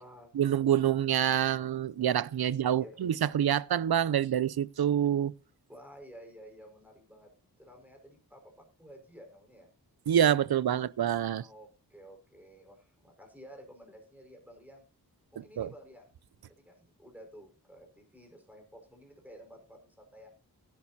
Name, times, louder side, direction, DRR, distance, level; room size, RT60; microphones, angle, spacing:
voice 1, 0.3-5.3 10.1-11.5 15.4-15.7, right 10 dB, 70° right, 0.6 m, -27 dB
voice 2, 2.7-3.0 5.7-7.3 7.6-9.7 11.4-14.8 15.3-16.1 16.5-20.3, equal, 5° right, 5.1 m, -52 dB
17.0 x 11.0 x 2.8 m
wide cardioid pair, 95°, 38 cm